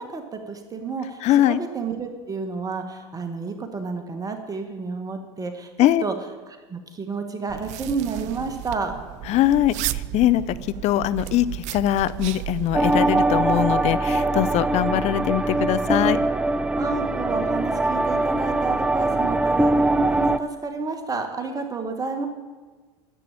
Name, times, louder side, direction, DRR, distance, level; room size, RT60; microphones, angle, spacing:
voice 1, 0.0-5.7 6.0-6.1 6.5-9.0 16.8-22.3, right 4 dB, 25° right, 6 dB, 1.7 m, -30 dB
voice 2, 1.2-1.6 5.8-6.0 9.3-10.6 10.8-16.2, left 13 dB, 50° left, 15 dB, 0.6 m, -22 dB
sound 1, 7.5-12.9, right 15 dB, 55° right, 0.5 m, -33 dB
sound 2, 12.7-20.4, right 2 dB, 10° right, 0.6 m, -22 dB
11.0 x 8.2 x 9.0 m, 1.4 s
hypercardioid pair, 80°, 15 cm